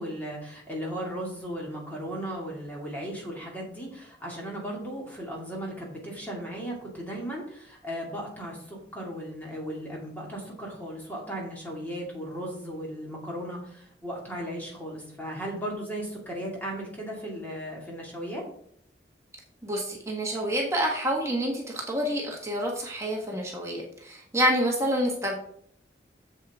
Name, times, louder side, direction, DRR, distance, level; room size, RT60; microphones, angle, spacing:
voice 1, 0.0-18.4, equal, 10° left, -3 dB, 2.5 m, -36 dB
voice 2, 19.6-25.3, equal, 15° right, -1 dB, 1.4 m, -28 dB
8.4 x 7.5 x 3.6 m, 0.66 s
head